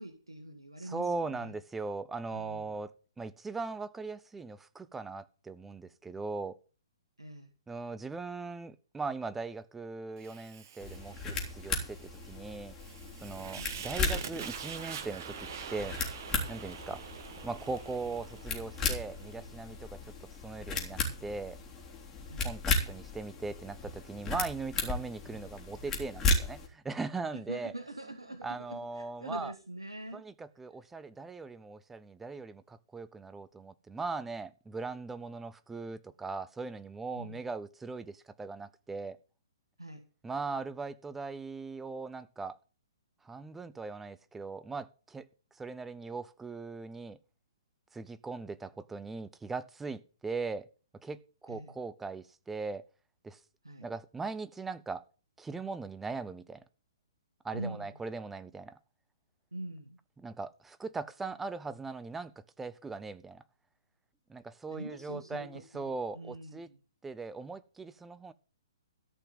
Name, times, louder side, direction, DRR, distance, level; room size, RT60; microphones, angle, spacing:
voice 1, 0.0-1.5 2.3-2.8 7.2-7.5 13.4-13.8 22.2-22.5 27.3-30.2 37.1-37.4 39.8-40.0 51.5-51.7 53.6-53.9 57.5-57.9 59.5-60.0 64.7-66.8, right 1 dB, 85° right, 1.7 m, -44 dB
voice 2, 0.8-2.9 3.2-6.6 7.7-12.0 12.2-12.7 13.2-16.0 16.5-17.0 17.4-20.0 20.4-21.6 22.4-27.7 28.4-29.5 30.1-39.2 40.2-42.6 43.2-45.3 45.6-47.2 47.9-50.7 51.0-52.8 53.2-53.4 53.8-55.0 55.4-56.6 57.4-58.8 60.2-62.3 62.6-63.4 64.3-66.7 67.0-68.3, right 4 dB, 10° right, 0.7 m, -39 dB
Fire, 10.2-19.4, right 7 dB, 45° right, 1.7 m, -45 dB
sound 1, 10.8-26.7, left 3 dB, 15° left, 3.4 m, -36 dB
13.5 x 5.8 x 8.9 m
figure-of-eight pair, 125°, 3 cm